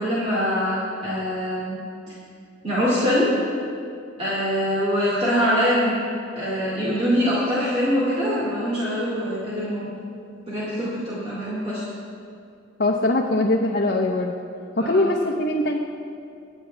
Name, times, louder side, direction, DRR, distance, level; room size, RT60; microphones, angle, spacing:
voice 1, 0.0-1.8 2.1-2.2 2.6-3.4 4.2-6.0 6.3-9.9 10.5-11.9 14.8-15.1, equal, 30° right, -8 dB, 2.4 m, -23 dB
voice 2, 12.8-14.3 14.8-15.8, left 2 dB, 50° left, 0 dB, 0.8 m, -21 dB
24.0 x 9.2 x 3.4 m, 2.5 s
head